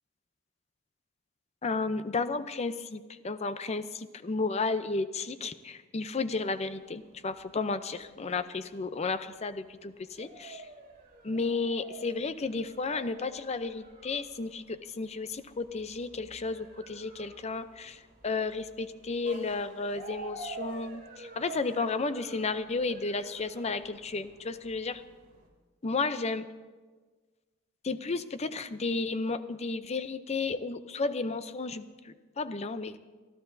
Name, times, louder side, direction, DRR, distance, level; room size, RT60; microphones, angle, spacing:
voice 1, 1.6-10.6 11.2-25.0 25.8-26.4 27.8-33.0, left 3 dB, 30° left, 12 dB, 0.5 m, -33 dB
sound 1, 6.4-25.5, right 2 dB, 45° right, 2.7 m, -49 dB
25.0 x 13.0 x 2.7 m, 1.4 s
head